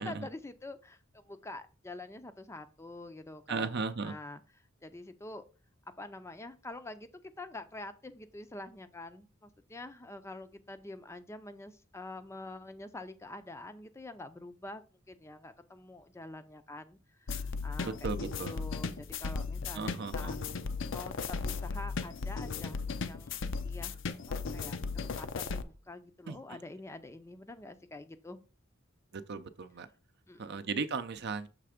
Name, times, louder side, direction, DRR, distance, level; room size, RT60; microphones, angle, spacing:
voice 1, 0.0-4.4 4.8-5.4 6.0-18.1 18.4-20.4 20.9-24.0 24.3-24.8 25.0-28.4 30.3-30.7, left 2 dB, 15° left, 0.5 m, -46 dB
voice 2, 3.5-4.1 17.8-18.6 19.7-20.3 26.3-26.4 29.1-29.9 30.4-31.5, right 4 dB, 55° right, 0.6 m, -36 dB
sound 1, 17.3-25.6, left 4 dB, 65° left, 0.5 m, -36 dB
6.7 x 3.4 x 5.0 m
head